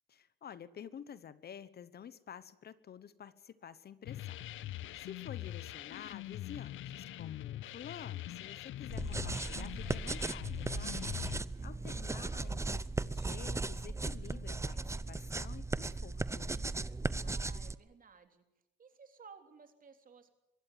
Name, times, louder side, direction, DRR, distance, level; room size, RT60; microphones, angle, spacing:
voice 1, 0.1-4.4 5.0-11.0 11.6-16.7, left 8 dB, 55° left, 16 dB, 1.1 m, -50 dB
sound 1, 4.1-11.4, left 14 dB, 80° left, 0.7 m, -43 dB
sound 2, 8.9-17.8, right 3 dB, 15° right, 0.7 m, -37 dB
voice 2, 11.5-12.2 17.2-18.4 18.8-20.3, right 5 dB, 45° right, 6 dB, 3.4 m, -57 dB
22.5 x 16.5 x 9.3 m, 0.94 s
cardioid pair, 90°, 20 cm